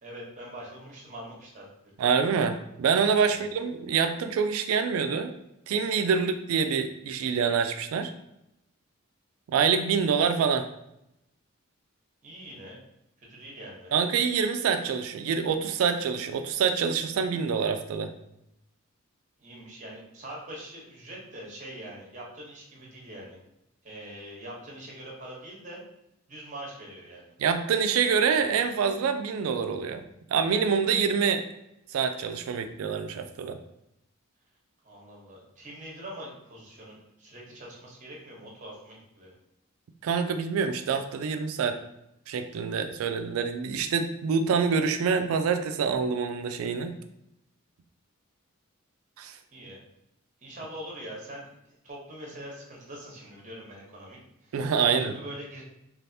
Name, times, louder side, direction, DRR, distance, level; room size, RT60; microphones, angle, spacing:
voice 1, 0.0-1.7 3.3-3.4 12.2-12.8 13.3-14.0 19.4-23.4 23.8-25.8 26.3-27.3 34.8-39.3 49.5-49.8 50.4-51.5 51.8-55.6, right 1 dB, 35° right, -3 dB, 0.9 m, -43 dB
voice 2, 2.0-5.3 5.7-8.1 9.5-10.7 13.9-18.1 27.4-30.0 30.3-31.4 31.9-33.6 40.0-41.8 42.3-46.9 49.2-49.3 54.5-55.1, right 6 dB, 80° right, 8 dB, 0.3 m, -26 dB
3.3 x 2.4 x 2.7 m, 0.84 s
head